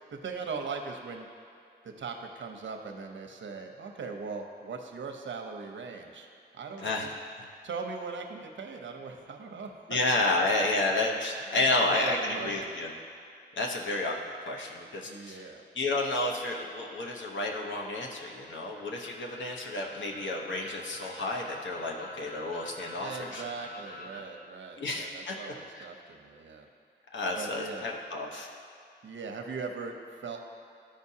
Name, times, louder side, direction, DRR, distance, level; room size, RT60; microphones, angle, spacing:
voice 1, 0.1-1.3 1.8-6.3 6.5-7.1 7.6-10.0 10.4-10.7 11.8-12.7 15.0-15.6 22.9-26.7 27.3-27.8 29.0-30.4, right 4 dB, 80° right, 3 dB, 0.7 m, -39 dB
voice 2, 9.9-12.9 13.6-23.4 24.8-25.4 25.7-25.8 27.1-28.5, left 2 dB, 80° left, 0 dB, 1.0 m, -31 dB
sound 1, 17.7-24.2, left 2 dB, 45° left, 0.8 m, -48 dB
13.0 x 5.1 x 2.8 m, 2.4 s
wide cardioid pair, 165°, 19 cm